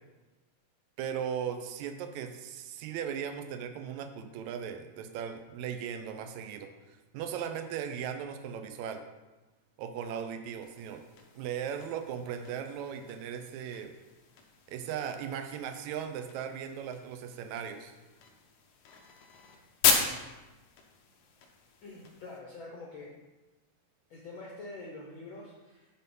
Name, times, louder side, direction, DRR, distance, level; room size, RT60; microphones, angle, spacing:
voice 1, 1.0-9.0 9.8-11.0 11.4-13.9 14.7-18.0, right 8 dB, 80° right, 6 dB, 1.7 m, -37 dB
sound 1, 10.6-22.4, left 6 dB, 70° left, 2.2 m, -36 dB
voice 2, 21.8-23.1 24.1-25.9, left 2 dB, 90° left, -3 dB, 1.1 m, -45 dB
9.2 x 4.4 x 5.4 m, 1.1 s
omnidirectional pair, 4.0 m